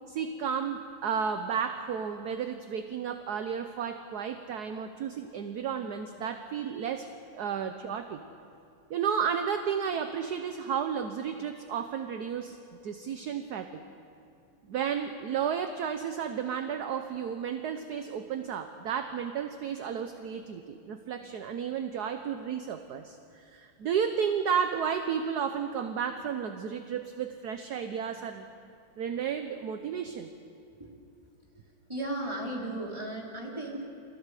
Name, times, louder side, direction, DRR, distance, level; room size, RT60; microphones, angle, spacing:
voice 1, 0.1-7.1 7.3-8.2 8.9-13.8 14.6-28.5 29.0-30.3, right 7 dB, 60° right, 7 dB, 1.2 m, -32 dB
voice 2, 31.9-33.9, right 1 dB, 10° right, -2 dB, 3.3 m, -35 dB
29.0 x 24.0 x 4.9 m, 2.6 s
omnidirectional pair, 2.4 m